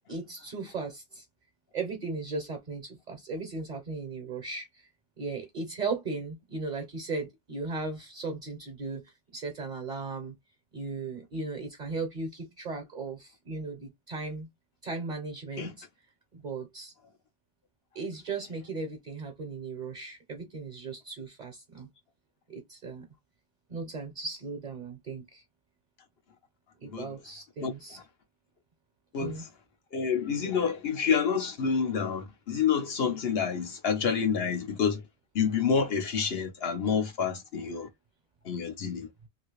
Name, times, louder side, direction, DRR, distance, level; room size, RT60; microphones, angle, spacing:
voice 1, 0.1-1.2 1.7-4.9 5.2-10.3 10.7-14.5 14.8-15.9 16.3-16.9 17.9-21.9 22.5-23.1 23.7-25.4 26.8-28.0 29.2-29.4, right 3 dB, 50° right, 0.9 m, -37 dB
voice 2, 29.1-29.5 29.9-35.0 35.3-37.9 38.4-39.1, left 6 dB, 70° left, 1.1 m, -28 dB
2.9 x 2.7 x 3.0 m
omnidirectional pair, 1.1 m